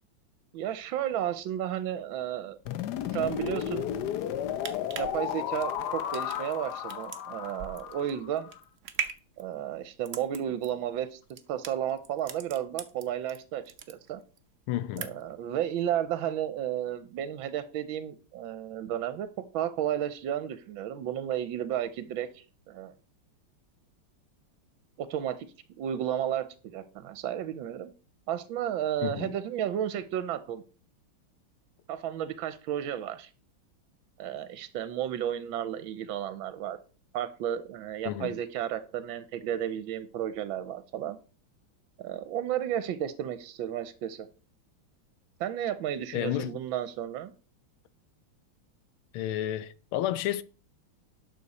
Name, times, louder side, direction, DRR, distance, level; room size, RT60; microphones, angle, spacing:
voice 1, 0.5-2.6 3.1-3.9 5.0-8.5 9.4-14.2 15.0-19.3 19.5-22.9 25.0-25.5 25.8-27.9 28.3-30.6 31.9-33.3 34.2-36.8 37.1-41.2 42.0-44.3 45.4-47.3, right 10 dB, 75° right, 1.5 m, -33 dB
sound 1, 2.7-8.6, left 10 dB, 65° left, 1.1 m, -34 dB
sound 2, 4.5-13.4 13.7-14.4 14.7-15.4 15.8-15.9, right 7 dB, 50° right, 0.9 m, -40 dB
voice 2, 14.7-15.1 29.0-29.3 38.0-38.4 46.1-46.6 49.1-50.4, left 12 dB, 90° left, 1.6 m, -31 dB
11.5 x 6.9 x 4.1 m
omnidirectional pair, 2.3 m